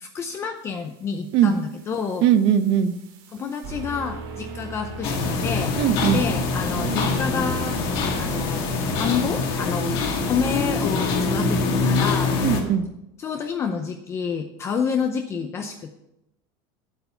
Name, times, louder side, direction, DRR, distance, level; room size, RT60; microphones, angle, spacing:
voice 1, 0.0-2.2 3.3-5.7 6.1-7.8 8.2-8.7 8.9-10.0 10.3-12.5 13.2-15.9, left 6 dB, 25° left, 5 dB, 0.6 m, -28 dB
sound 1, 1.2-9.9, right 3 dB, 70° right, 2.3 m, -36 dB
voice 2, 2.2-2.9 5.8-6.2 12.4-12.9, right 9 dB, 45° right, 12 dB, 0.7 m, -19 dB
sound 2, 5.0-12.6, left 4 dB, 45° left, 1.8 m, -24 dB
9.3 x 8.1 x 5.7 m, 0.87 s
cardioid pair, 170°, 12 cm